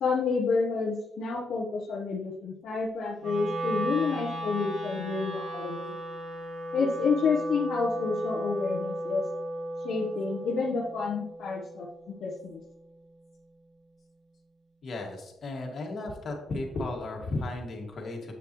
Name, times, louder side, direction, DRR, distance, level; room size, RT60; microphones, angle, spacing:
voice 1, 0.0-6.0 6.7-9.2 9.8-11.9 12.2-12.6, left 4 dB, 65° left, -2 dB, 0.9 m, -29 dB
Wind instrument woodwind instrument, 3.2-13.4, right 1 dB, 65° right, 2.3 m, -36 dB
voice 2, 14.8-18.3, left 2 dB, 50° left, 1 dB, 2.0 m, -34 dB
7.4 x 6.9 x 3.0 m, 0.87 s
cardioid pair, 90°, 0 cm